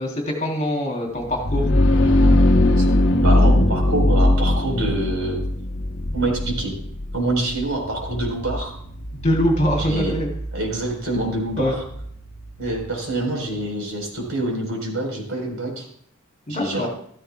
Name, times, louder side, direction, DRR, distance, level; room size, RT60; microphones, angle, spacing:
voice 1, 0.0-1.7 9.2-10.3 11.6-11.7 16.5-16.9, equal, 35° left, 0 dB, 3.3 m, -23 dB
sound 1, 1.2-12.8, left 1 dB, 60° left, 1.0 m, -21 dB
voice 2, 3.2-5.4 6.1-6.7 7.1-8.7 9.8-10.1 10.5-11.8 12.6-15.8 16.5-16.9, right 2 dB, 70° right, 1 dB, 4.4 m, -26 dB
14.5 x 14.0 x 2.3 m, 0.65 s
head